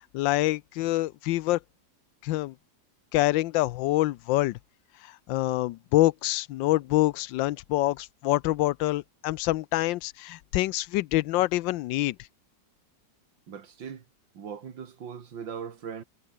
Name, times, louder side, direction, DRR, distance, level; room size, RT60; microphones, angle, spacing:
voice 1, 0.1-1.6 2.2-2.5 3.1-4.6 5.3-12.1, left 17 dB, 90° left, 1.3 m, -26 dB
voice 2, 13.5-14.0 14.3-16.0, right 7 dB, 90° right, 2.6 m, -39 dB
omnidirectional pair, 2.0 m